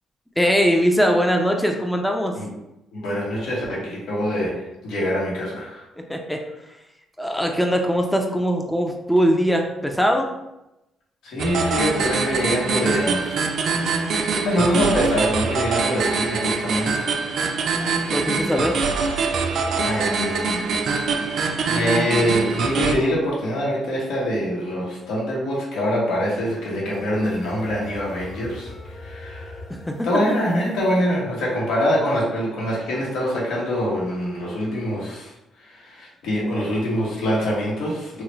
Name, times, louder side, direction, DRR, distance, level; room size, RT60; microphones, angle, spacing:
voice 1, 0.4-2.4 6.1-6.4 7.2-10.3 18.1-18.8 29.9-30.4, equal, 5° left, 2 dB, 0.4 m, -21 dB
voice 2, 2.9-5.8 11.2-13.5 14.4-17.1 19.8-20.8 21.7-28.7 28.9-29.6 30.0-35.3 35.6-38.2, equal, 80° left, -4 dB, 1.0 m, -24 dB
sound 1, 11.4-22.9, right 4 dB, 70° right, 0.4 m, -24 dB
sound 2, 26.0-31.0, left 2 dB, 40° left, 1.0 m, -42 dB
3.1 x 2.4 x 3.0 m, 0.93 s
cardioid pair, 90°, 0 cm